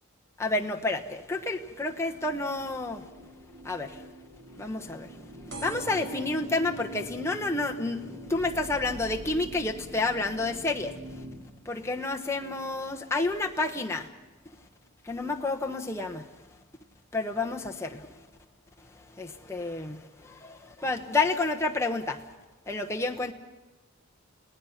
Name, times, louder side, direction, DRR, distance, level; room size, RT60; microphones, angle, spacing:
voice 1, 0.4-3.1 3.6-4.0 4.6-5.1 5.6-10.9 11.6-14.1 15.0-16.3 17.1-18.1 19.2-22.2 22.7-23.3, left 3 dB, 15° left, 2 dB, 1.2 m, -30 dB
sound 1, 2.2-11.4, right 1 dB, 90° right, 3.0 m, -46 dB
sound 2, 5.5-12.7 13.2-13.7 14.5-14.6 14.9-15.0 15.2-15.3, right 1 dB, 55° right, 4.8 m, -46 dB
30.0 x 18.5 x 5.9 m, 1.1 s
head